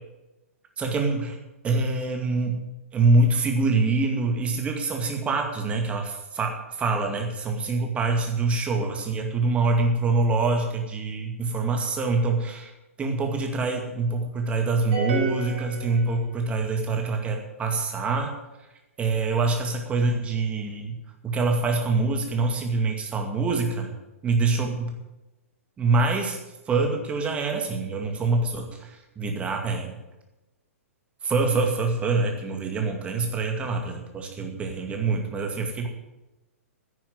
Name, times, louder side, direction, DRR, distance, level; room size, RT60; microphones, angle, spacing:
voice 1, 0.8-1.4 1.6-2.6 2.9-12.7 13.0-18.3 19.0-21.0 21.2-23.9 24.2-24.9 25.8-26.4 26.7-30.0 31.2-35.9, right 3 dB, 15° right, 3 dB, 2.2 m, -25 dB
sound 1, 14.9-16.6, right 5 dB, 45° right, 3.8 m, -31 dB
10.0 x 9.9 x 9.5 m, 1.0 s
figure-of-eight pair, 110°, 8 cm